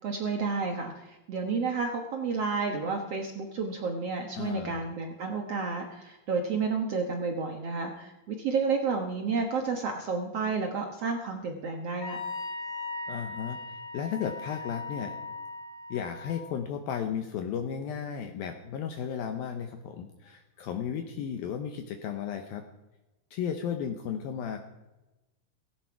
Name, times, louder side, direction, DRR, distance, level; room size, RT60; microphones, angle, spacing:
voice 1, 0.0-12.2, right 4 dB, 70° right, 3 dB, 1.4 m, -31 dB
voice 2, 4.4-4.8 13.1-15.2 15.9-22.6 23.3-24.6, left 8 dB, 70° left, 6 dB, 2.5 m, -34 dB
Wind instrument woodwind instrument, 12.0-16.4, left 3 dB, 55° left, 6.2 m, -38 dB
17.0 x 16.0 x 4.8 m, 1.0 s
omnidirectional pair, 4.8 m